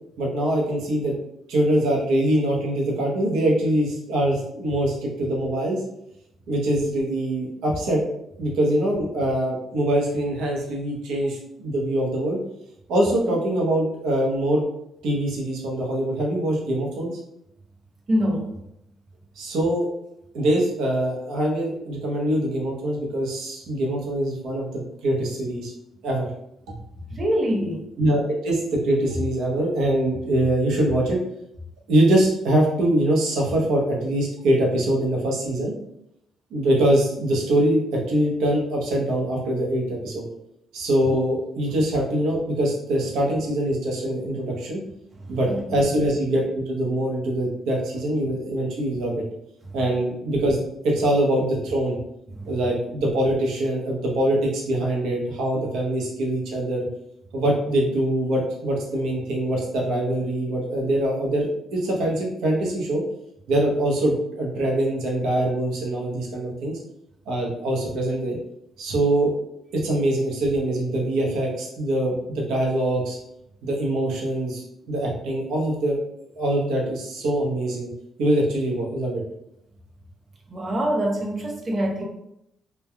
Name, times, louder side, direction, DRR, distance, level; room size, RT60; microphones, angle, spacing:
voice 1, 0.2-1.1 1.5-5.8 6.5-8.0 8.4-12.4 12.9-14.6 15.0-17.1 19.4-19.9 20.3-25.7 26.0-26.3 26.7-26.8 28.0-31.2 31.9-35.7 36.5-40.2 40.7-44.8 45.3-49.2 49.7-52.0 52.5-56.9 57.3-63.0 63.5-66.8 67.3-68.4 68.8-69.3 69.7-73.2 73.6-76.0 76.4-77.9 78.2-79.2, right 1 dB, 85° right, -2 dB, 0.7 m, -23 dB
voice 2, 18.1-18.5 27.1-27.8 41.1-41.2 45.3-45.4 45.8-45.9 52.4-52.5 80.5-82.0, equal, 40° right, 0 dB, 0.6 m, -24 dB
3.2 x 2.2 x 2.2 m, 0.79 s
cardioid pair, 85°, 0 cm